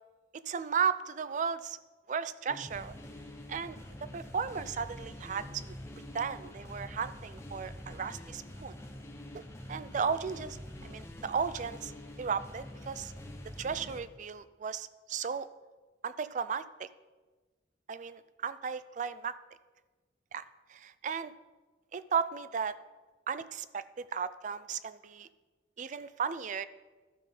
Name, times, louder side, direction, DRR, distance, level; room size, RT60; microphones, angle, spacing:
voice 1, 0.5-1.8 2.1-2.9 3.5-5.7 6.1-8.8 9.3-9.4 9.7-10.6 10.8-11.9 12.2-13.1 13.6-15.5 16.0-16.9 17.9-19.3 20.3-20.4 20.7-21.3 21.9-22.8 23.3-25.3 25.8-26.6, right 6 dB, 40° right, 15 dB, 0.3 m, -35 dB
sound 1, 2.5-14.0, left 1 dB, 15° left, 0.9 m, -46 dB
12.0 x 5.5 x 5.3 m, 1.3 s
head